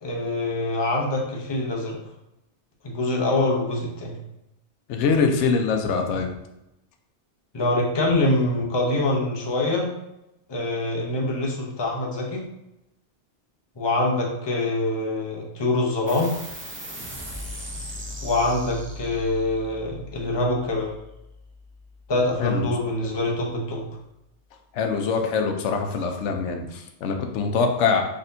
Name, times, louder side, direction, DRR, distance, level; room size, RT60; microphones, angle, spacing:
voice 1, 0.0-2.0 2.8-4.1 7.5-9.9 10.5-12.4 13.8-16.3 18.2-20.9 22.1-23.8, left 2 dB, 30° left, -1 dB, 0.7 m, -24 dB
voice 2, 4.9-6.3 22.4-22.7 24.8-28.0, left 5 dB, 90° left, 4 dB, 0.9 m, -23 dB
sound 1, 16.1-23.0, left 1 dB, 20° right, 0.3 m, -39 dB
4.2 x 3.5 x 2.6 m, 0.88 s
omnidirectional pair, 1.2 m